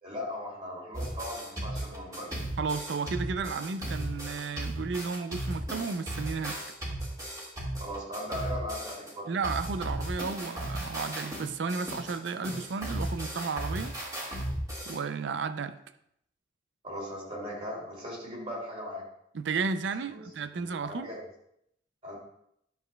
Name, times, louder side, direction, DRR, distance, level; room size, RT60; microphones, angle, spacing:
voice 1, 0.0-2.3 7.8-9.3 16.8-19.0 20.1-20.2 20.5-21.2 22.0-22.2, equal, 35° right, -4 dB, 2.8 m, -38 dB
sound 1, 0.9-9.1 9.4-15.0, right 1 dB, 20° right, 1.8 m, -36 dB
voice 2, 2.6-6.6 9.3-14.0 14.9-15.8 19.3-21.1, right 5 dB, 80° right, 12 dB, 0.4 m, -33 dB
10.5 x 6.5 x 2.2 m, 0.74 s
head